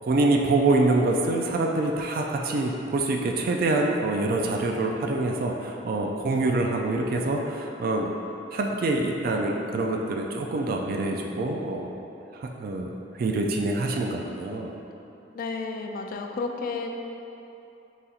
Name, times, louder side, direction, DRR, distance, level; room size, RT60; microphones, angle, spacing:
voice 1, 0.0-8.1 8.5-11.9 12.3-14.7, right 2 dB, 55° right, 1 dB, 0.3 m, -25 dB
voice 2, 15.3-16.9, left 4 dB, 50° left, 3 dB, 0.3 m, -32 dB
4.1 x 3.9 x 2.4 m, 2.8 s
head